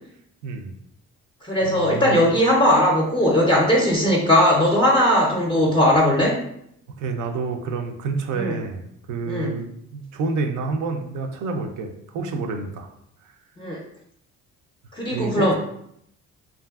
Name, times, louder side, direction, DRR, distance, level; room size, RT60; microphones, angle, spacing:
voice 1, 0.4-0.7 1.6-2.3 7.0-12.9 13.2-13.3 15.1-15.5, right 4 dB, 80° right, 5 dB, 0.5 m, -29 dB
voice 2, 1.4-6.4 8.4-8.5 9.3-9.5 13.6-13.8 14.9-15.5, left 1 dB, 15° left, -3 dB, 0.5 m, -19 dB
2.7 x 2.4 x 2.3 m, 0.73 s
cardioid pair, 90°, 30 cm